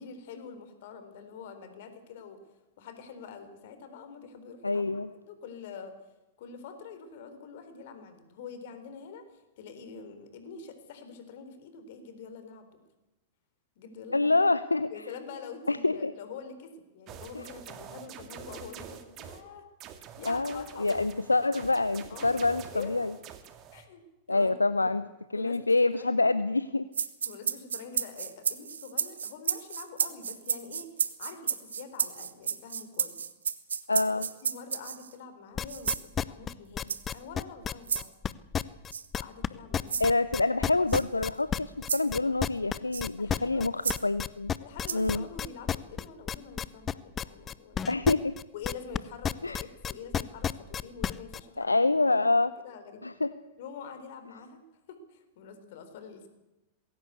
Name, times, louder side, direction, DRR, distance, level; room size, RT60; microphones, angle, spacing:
voice 1, 0.0-2.4 2.8-5.0 5.3-5.9 6.4-12.8 13.8-14.4 14.9-19.7 19.9-21.0 22.1-22.4 22.7-23.2 23.7-24.0 24.3-24.5 24.8-24.9 25.3-26.3 27.2-30.9 31.2-33.2 33.9-34.1 34.4-38.1 39.1-40.2 42.2-42.4 43.2-43.7 44.6-48.1 48.5-52.3 52.6-53.0 53.6-54.6 54.9-56.3, left 6 dB, 55° left, 9 dB, 4.0 m, -45 dB
voice 2, 4.6-5.1 14.1-14.9 15.7-16.1 17.3-17.4 20.2-23.1 24.3-25.0 25.3-26.9 33.9-34.3 40.0-44.5 44.9-45.2 47.9-48.3 49.4-49.6 51.6-52.5 53.0-53.3, left 3 dB, 80° left, 14 dB, 0.6 m, -26 dB
sound 1, 17.1-19.4 19.8-23.9, right 8 dB, 35° right, 2.2 m, -46 dB
sound 2, 26.9-35.1 35.7-36.1 36.9-37.2 37.9-38.0 38.9-39.1 39.9-40.1 40.9-41.0 41.9-42.1 42.9-43.1 43.8-44.0 44.9-45.1, right 7 dB, 70° right, 1.1 m, -31 dB
sound 3, 35.6-39.5 39.7-49.0 49.2-51.4, left 8 dB, 25° left, 0.7 m, -31 dB
20.5 x 17.0 x 8.2 m, 1.0 s
figure-of-eight pair, 90°, 0 cm